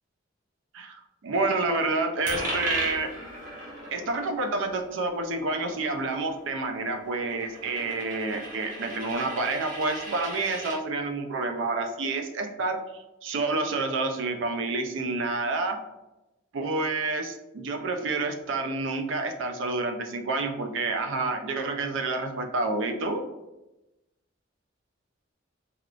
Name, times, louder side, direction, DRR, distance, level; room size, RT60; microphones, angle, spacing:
voice 1, 0.7-3.1 3.9-12.8 13.2-15.8 16.5-23.2, right 3 dB, 70° right, 5 dB, 0.4 m, -29 dB
Coin (dropping), 2.3-10.8, right 1 dB, 40° right, 0.8 m, -37 dB
3.4 x 2.3 x 2.4 m, 0.98 s
head